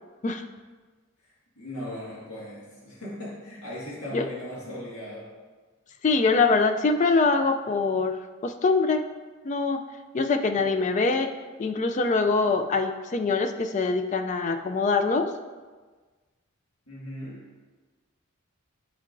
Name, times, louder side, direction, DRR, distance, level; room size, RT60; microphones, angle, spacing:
voice 1, 1.2-5.3 16.9-17.4, left 1 dB, 80° left, -6 dB, 1.8 m, -38 dB
voice 2, 6.0-9.1 9.4-9.8 10.1-11.3 11.6-15.3, left 4 dB, 35° left, 7 dB, 0.3 m, -24 dB
10.5 x 4.5 x 2.6 m, 1.4 s
head